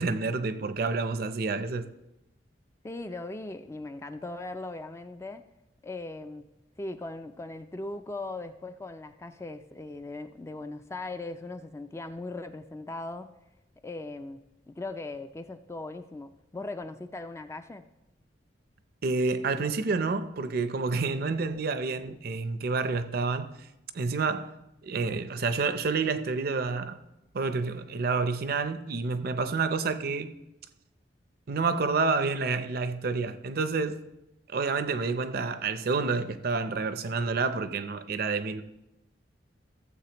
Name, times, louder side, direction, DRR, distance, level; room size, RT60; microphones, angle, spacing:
voice 1, 0.0-1.9 19.0-23.7 23.9-27.0 27.3-30.3 31.5-34.0 34.5-38.6, right 4 dB, 55° right, 0.5 m, -29 dB
voice 2, 2.8-5.4 5.8-6.5 6.8-13.3 13.8-14.4 14.7-17.8, left 2 dB, 15° left, 0.3 m, -39 dB
15.0 x 7.5 x 2.9 m
head